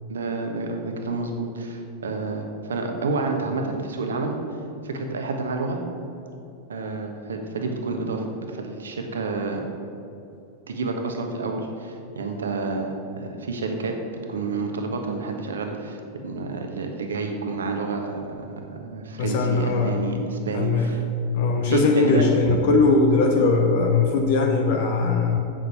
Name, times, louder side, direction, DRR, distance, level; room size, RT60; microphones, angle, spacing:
voice 1, 0.1-4.3 4.8-5.8 6.7-9.6 10.7-14.0 14.3-21.0 21.7-22.3, right 3 dB, 65° right, 3 dB, 1.3 m, -29 dB
voice 2, 19.2-20.0 20.5-20.9 21.3-25.4, left 3 dB, 50° left, 3 dB, 0.9 m, -20 dB
8.0 x 7.4 x 6.9 m, 2.7 s
figure-of-eight pair, 90°, 0 cm